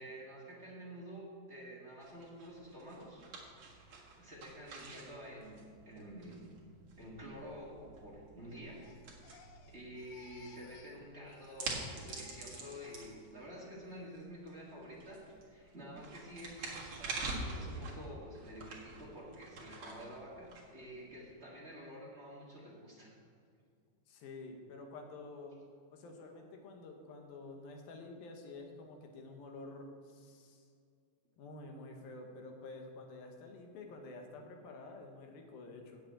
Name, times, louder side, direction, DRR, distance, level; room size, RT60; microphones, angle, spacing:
voice 1, 0.0-3.2 4.2-6.4 7.0-8.8 9.7-23.1, equal, 25° right, -5 dB, 1.7 m, -49 dB
sound 1, 2.0-21.2, right 3 dB, 45° right, 2.0 m, -47 dB
Crying sobbing, 8.5-11.0 11.3-13.5 13.9-14.3, left 6 dB, 90° left, 2.9 m, -61 dB
voice 2, 24.1-25.6 25.9-30.6 31.4-36.0, left 3 dB, 70° left, 3 dB, 3.0 m, -49 dB
8.3 x 8.0 x 8.7 m, 2.2 s
omnidirectional pair, 4.4 m